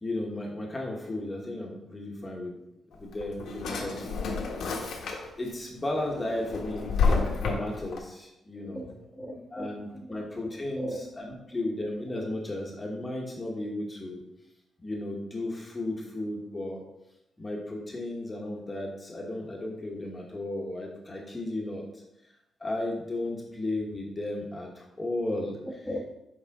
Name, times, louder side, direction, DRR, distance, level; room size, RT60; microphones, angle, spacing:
voice 1, 0.0-2.5 2.9-4.1 5.4-8.9 9.5-14.2 14.8-16.8 17.4-21.8 22.6-25.6, left 1 dB, 20° left, -1 dB, 1.2 m, -34 dB
Drawer open or close, 2.9-5.5 5.9-8.0, left 4 dB, 85° left, 1.3 m, -29 dB
voice 2, 8.6-10.2 10.7-11.0 25.8-26.1, equal, ahead, -2 dB, 1.2 m, -38 dB
7.2 x 4.8 x 3.6 m, 0.88 s
cardioid pair, 125°, 0 cm